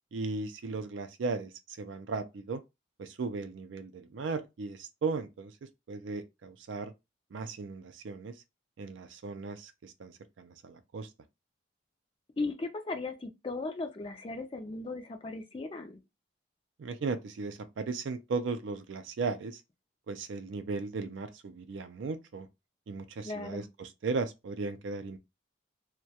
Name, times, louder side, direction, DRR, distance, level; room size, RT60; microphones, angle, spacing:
voice 1, 0.1-2.6 3.0-6.9 7.3-8.3 8.8-11.1 16.8-19.6 20.1-22.5 22.9-25.2, right 4 dB, 70° right, 0.4 m, -36 dB
voice 2, 12.4-16.0 23.2-23.7, left 3 dB, 25° left, 0.4 m, -37 dB
2.3 x 2.1 x 2.7 m
head